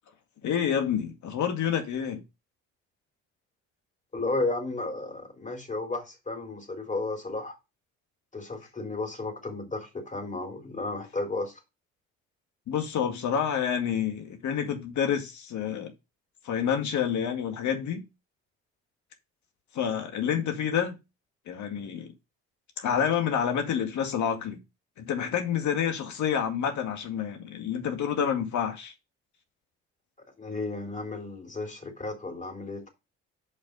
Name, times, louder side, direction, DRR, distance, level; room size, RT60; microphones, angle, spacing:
voice 1, 0.4-2.2 12.7-15.9 16.4-18.1 19.7-21.0 21.5-22.1 22.8-24.6 25.0-28.9, left 8 dB, 65° left, 2.1 m, -28 dB
voice 2, 4.1-7.5 8.3-11.5 30.4-32.9, left 2 dB, 25° left, 3.8 m, -33 dB
6.6 x 5.8 x 5.4 m
supercardioid pair, 65°, 31 cm